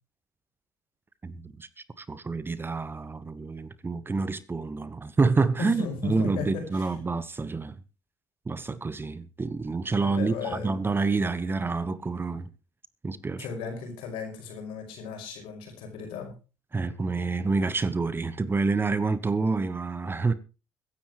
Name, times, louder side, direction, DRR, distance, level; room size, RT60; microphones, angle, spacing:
voice 1, 1.2-1.7 2.0-7.8 8.5-12.5 13.0-13.5 16.7-20.3, right 4 dB, 25° right, 1.1 m, -28 dB
voice 2, 5.6-6.9 10.0-10.9 13.4-16.3, left 6 dB, 70° left, 5.6 m, -36 dB
22.0 x 10.5 x 3.2 m
hypercardioid pair, 60°, 9 cm